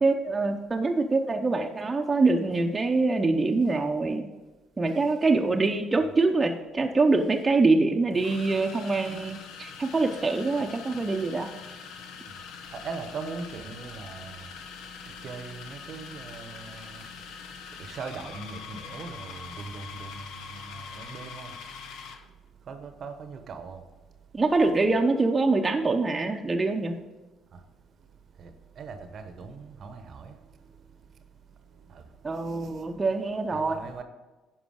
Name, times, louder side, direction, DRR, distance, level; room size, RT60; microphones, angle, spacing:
voice 1, 0.0-4.3 4.8-11.5 24.3-27.0 32.2-33.8, right 3 dB, 25° right, 3 dB, 0.8 m, -24 dB
sound 1, 6.8-6.9 8.1-22.3, left 6 dB, 65° left, 0.8 m, -43 dB
voice 2, 12.7-14.5 15.2-17.0 17.8-21.5 22.7-23.8 27.5-27.6 28.4-30.4 31.9-32.0 32.5-32.7 33.5-34.0, right 4 dB, 50° right, 8 dB, 1.0 m, -40 dB
10.5 x 5.3 x 4.9 m, 1.2 s
figure-of-eight pair, 50°, 0 cm